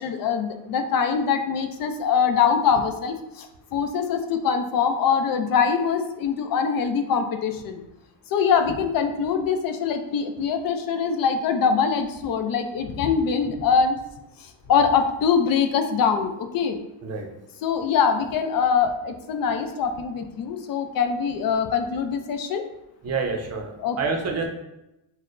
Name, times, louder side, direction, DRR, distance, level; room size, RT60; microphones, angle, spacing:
voice 1, 0.0-3.5 3.7-7.8 8.3-14.0 14.4-16.8 17.6-22.6 23.8-24.0, left 6 dB, 55° left, 7 dB, 0.5 m, -23 dB
voice 2, 23.0-24.5, right 4 dB, 40° right, 2 dB, 0.5 m, -28 dB
6.0 x 2.1 x 2.5 m, 0.90 s
cardioid pair, 155°, 42 cm